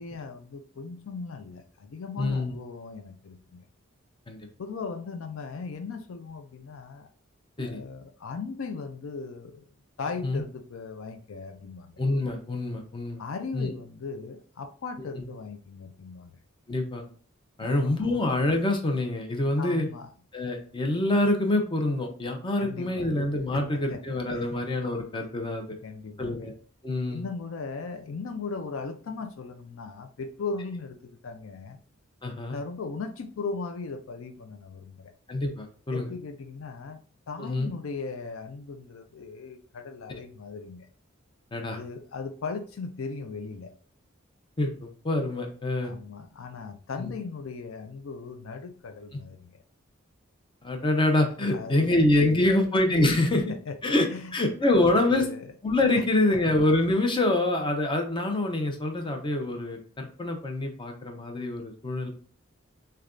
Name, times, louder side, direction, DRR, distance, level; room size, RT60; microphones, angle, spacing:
voice 1, 0.0-3.6 4.6-7.1 7.6-9.7 10.0-12.0 13.2-16.4 17.6-18.2 19.6-20.1 22.6-23.2 23.5-23.7 23.9-24.0 24.3-24.5 25.8-26.5 27.1-31.8 32.5-35.1 35.9-37.0 37.3-40.9 41.7-43.7 45.8-49.6 51.5-52.6 53.3-53.8 54.1-54.3 54.7-55.5 55.9-56.0 56.3-56.6, left 4 dB, 75° left, 7 dB, 0.4 m, -38 dB
voice 2, 2.2-2.6 4.3-4.4 7.6-7.8 10.2-10.4 12.0-13.2 13.5-13.7 15.2-15.3 16.7-17.0 17.6-19.9 20.3-25.7 26.2-26.5 26.8-27.2 32.2-32.6 35.3-36.1 37.4-37.7 41.5-41.8 44.6-45.9 47.0-47.1 50.6-53.4 53.8-54.1 54.3-55.3 55.6-62.1, left 2 dB, 25° left, 3 dB, 0.7 m, -26 dB
6.3 x 2.3 x 2.5 m, 0.43 s
head